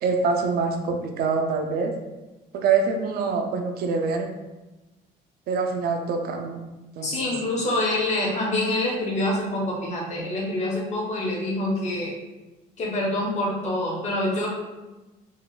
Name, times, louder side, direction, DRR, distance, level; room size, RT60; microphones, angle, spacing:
voice 1, 0.0-1.9 2.5-4.3 5.5-6.6 7.0-7.3, right 4 dB, 65° right, 3 dB, 0.5 m, -25 dB
voice 2, 7.0-12.1 12.8-14.5, left 1 dB, 40° left, -2 dB, 1.0 m, -26 dB
3.9 x 2.3 x 2.2 m, 1.1 s
cardioid pair, 110°, 17 cm